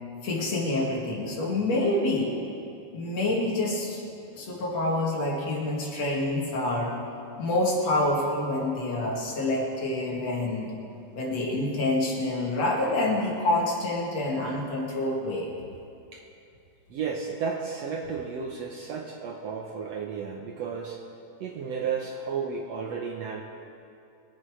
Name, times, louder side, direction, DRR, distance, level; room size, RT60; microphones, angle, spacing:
voice 1, 0.2-2.3 2.9-4.0 4.3-6.9 7.4-10.7 11.1-15.5, left 2 dB, 55° left, -3 dB, 2.9 m, -27 dB
voice 2, 16.9-21.0 21.4-23.4, right 6 dB, 70° right, 1 dB, 1.7 m, -33 dB
22.5 x 8.5 x 4.9 m, 2.6 s
omnidirectional pair, 3.7 m